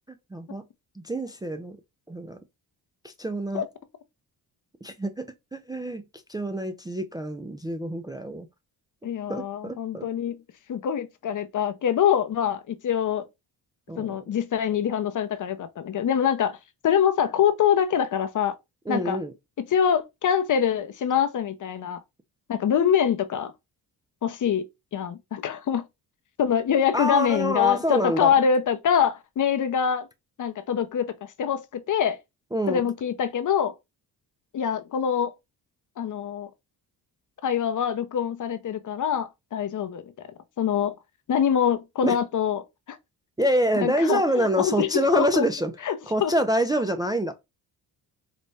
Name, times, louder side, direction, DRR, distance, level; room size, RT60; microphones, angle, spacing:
voice 1, 0.3-0.6 1.0-1.8 2.1-2.4 3.0-3.7 4.8-6.0 6.3-8.5 9.3-10.1 13.9-14.1 18.9-19.3 26.9-28.3 32.5-32.8 42.0-42.1 43.4-45.7 46.1-47.3, right 1 dB, 10° right, 0.3 m, -26 dB
voice 2, 9.0-10.4 10.7-13.2 14.0-16.6 16.8-18.5 18.9-19.2 19.7-22.0 22.5-23.5 24.2-24.6 24.9-25.8 26.4-30.1 30.4-32.2 32.7-33.7 34.5-35.3 36.0-36.5 37.4-40.0 40.6-40.9 41.3-43.0 43.8-45.4 45.8-46.0 46.2-46.3, left 8 dB, 50° left, 0.6 m, -24 dB
4.1 x 2.2 x 3.2 m
cardioid pair, 100°, 40 cm